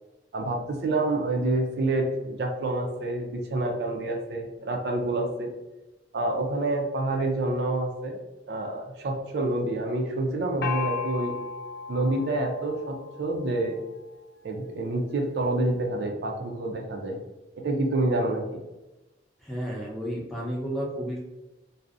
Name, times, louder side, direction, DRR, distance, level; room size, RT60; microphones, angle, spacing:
voice 1, 0.3-5.5 6.1-8.2 8.5-11.3 11.9-13.8 14.4-17.2 17.6-18.6, right 2 dB, 65° right, 2 dB, 0.4 m, -28 dB
Gong, 10.6-14.1, left 5 dB, 60° left, 0.3 m, -36 dB
voice 2, 19.4-21.2, equal, ahead, -5 dB, 0.5 m, -32 dB
2.5 x 2.0 x 2.4 m, 1.0 s
head